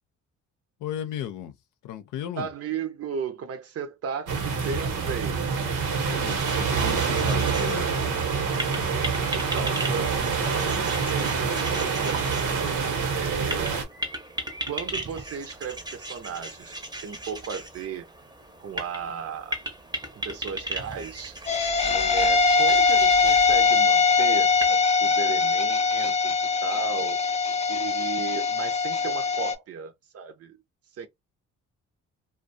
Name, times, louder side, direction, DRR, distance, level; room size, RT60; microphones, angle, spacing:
voice 1, 0.8-1.5 1.8-2.5 5.9-8.2, left 10 dB, 80° left, 0.6 m, -36 dB
voice 2, 2.4-5.5 9.5-13.8 14.7-16.8 17.0-18.1 18.6-19.6 20.1-21.4 21.9-27.2 27.7-30.6 31.0-31.1, right 6 dB, 50° right, 0.6 m, -35 dB
sound 1, 4.3-13.8, right 5 dB, 75° right, 1.0 m, -26 dB
sound 2, 6.2-24.7, right 1 dB, 15° right, 0.7 m, -37 dB
sound 3, 21.5-29.5, left 4 dB, 20° left, 0.5 m, -22 dB
2.5 x 2.2 x 2.5 m
cardioid pair, 90°, 30 cm